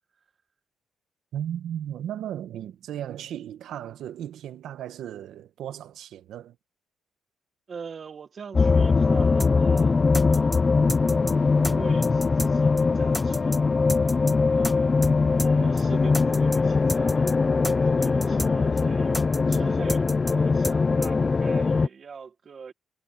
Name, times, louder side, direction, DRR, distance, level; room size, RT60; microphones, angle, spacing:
voice 1, 1.3-6.6, right 10 dB, 75° right, 1.3 m, -35 dB
voice 2, 7.7-10.7 11.6-13.8 14.0-17.4 17.6-22.7, right 6 dB, 45° right, 1.7 m, -43 dB
sound 1, 8.5-21.9, left 4 dB, 30° left, 0.6 m, -21 dB
sound 2, 9.4-9.5 9.8-9.9 10.1-10.6 10.9-11.3 11.6-11.7 12.0-12.5 12.8-12.9 13.1-13.6 13.9-14.3 14.6-14.7 15.0-15.1 15.4-15.5 15.8-15.9 16.1-16.6 16.9-17.3 17.6-17.7 18.0-18.5 18.8-18.9 19.1-19.6 19.9-20.3 20.6-20.8 21.0-21.1, left 1 dB, 5° left, 1.5 m, -32 dB
cardioid pair, 90°, 0 cm